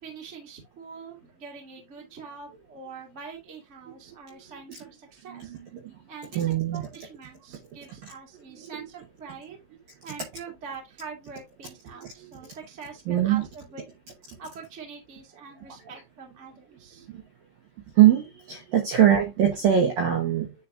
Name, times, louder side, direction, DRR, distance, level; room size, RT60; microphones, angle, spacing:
voice 1, 0.0-5.5 6.1-9.6 10.0-13.8 14.4-17.1, right 5 dB, 25° right, 1.5 m, -44 dB
voice 2, 6.4-6.8 8.5-8.8 11.9-12.3 13.1-13.4 17.1-17.2 18.0-20.5, right 10 dB, 70° right, 2.2 m, -22 dB
10.0 x 4.1 x 2.8 m
omnidirectional pair, 5.7 m